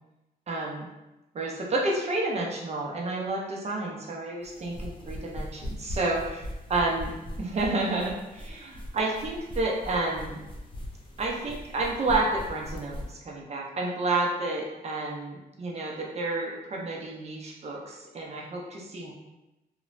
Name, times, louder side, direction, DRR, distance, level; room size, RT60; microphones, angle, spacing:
voice 1, 0.5-0.9 1.3-7.1 7.4-10.4 11.2-19.1, right 2 dB, 40° right, -2 dB, 0.5 m, -30 dB
sound 1, 4.4-13.1, left 1 dB, 30° left, 0.4 m, -40 dB
2.9 x 2.0 x 2.5 m, 0.98 s
wide cardioid pair, 150°, 16 cm